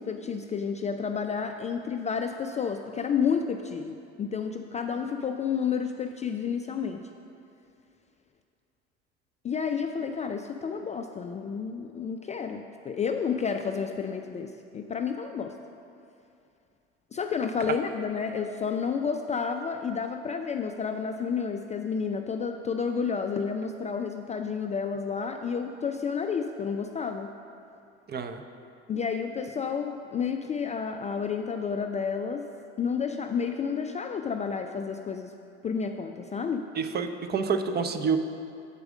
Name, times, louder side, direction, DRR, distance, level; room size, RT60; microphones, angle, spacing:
voice 1, 0.0-7.1 9.4-15.5 17.1-27.3 28.9-32.4 32.8-35.3 35.6-36.7, left 6 dB, 20° left, 5 dB, 0.3 m, -30 dB
voice 2, 28.1-28.4 36.8-38.2, right 5 dB, 30° right, 8 dB, 0.6 m, -28 dB
8.2 x 4.8 x 6.2 m, 2.6 s
hypercardioid pair, 70°, 33 cm